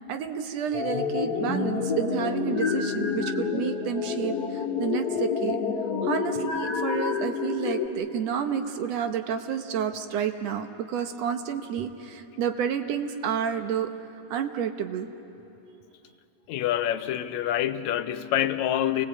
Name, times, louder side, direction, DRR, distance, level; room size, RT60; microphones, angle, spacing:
voice 1, 0.1-5.6 6.0-13.9 14.3-15.1, right 8 dB, 70° right, 7 dB, 1.9 m, -30 dB
sound 1, 0.7-7.9, left 5 dB, 35° left, 1.9 m, -28 dB
voice 2, 16.5-19.1, left 11 dB, 80° left, 11 dB, 2.0 m, -26 dB
28.0 x 19.5 x 8.2 m, 3.0 s
omnidirectional pair, 3.3 m